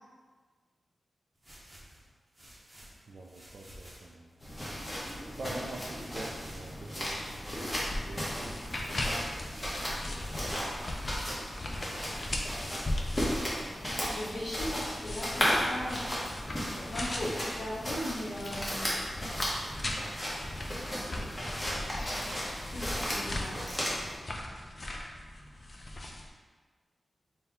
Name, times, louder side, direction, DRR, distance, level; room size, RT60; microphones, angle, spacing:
sound 1, 1.4-4.1 4.5-5.4 5.7-8.0 8.4-11.3 11.8-13.3, equal, 20° right, 0.8 m, -52 dB
voice 1, 3.1-4.4 5.4-8.8 9.9-11.4, right 2 dB, 60° right, -3 dB, 0.4 m, -46 dB
sound 2, 4.4-24.2, equal, 20° left, 0.9 m, -35 dB
sound 3, 7.0-26.3, left 1 dB, 40° left, 0.4 m, -39 dB
voice 2, 13.9-16.1 16.9-18.9 21.9-23.8, equal, 55° left, -7 dB, 1.3 m, -39 dB
3.6 x 2.2 x 4.1 m, 1.4 s
wide cardioid pair, 110°, 0 cm